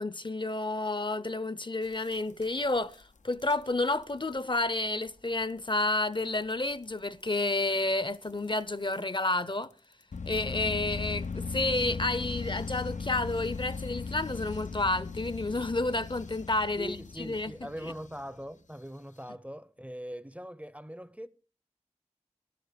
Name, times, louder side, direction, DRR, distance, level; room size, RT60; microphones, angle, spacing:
voice 1, 0.0-9.7 10.3-17.5 17.8-17.9, left 2 dB, 40° left, 0.6 m, -30 dB
sound 1, 1.8-2.9 3.3-3.5 3.9-4.1 4.4-4.5 4.7-4.8 5.4-5.5 6.3-6.4 6.8-6.9 8.2-8.3 8.9-9.0 10.1-18.4, left 4 dB, 90° left, 0.6 m, -38 dB
voice 2, 16.8-21.3, equal, 10° right, 0.6 m, -41 dB
13.0 x 12.5 x 5.1 m
wide cardioid pair, 45°, 12 cm